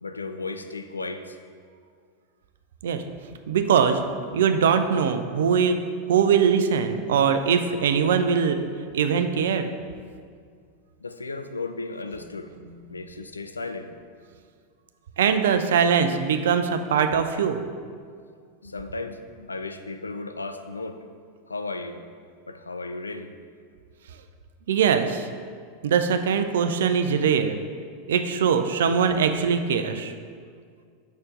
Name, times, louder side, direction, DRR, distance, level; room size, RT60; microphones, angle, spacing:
voice 1, 0.0-1.4 11.0-12.5 12.9-13.9 18.6-21.0 21.5-22.0 22.5-23.3, left 3 dB, 80° left, 8 dB, 0.3 m, -35 dB
voice 2, 3.5-4.0 4.3-5.8 6.1-8.6 8.9-9.7 15.2-17.6 24.7-25.3 25.8-27.6 28.1-30.1, right 7 dB, 65° right, 8 dB, 0.4 m, -22 dB
5.9 x 4.4 x 3.6 m, 2.1 s
figure-of-eight pair, 85°, 0 cm